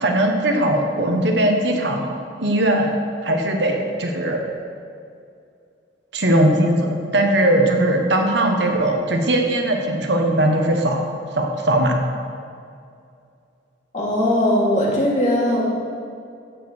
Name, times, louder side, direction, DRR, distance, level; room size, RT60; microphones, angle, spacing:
voice 1, 0.0-2.9 3.2-4.4 6.1-11.0 11.3-11.9, right 1 dB, 65° right, 2 dB, 1.3 m, -19 dB
voice 2, 13.9-15.6, left 1 dB, 40° left, -4 dB, 2.6 m, -19 dB
15.5 x 5.3 x 6.5 m, 2.4 s
head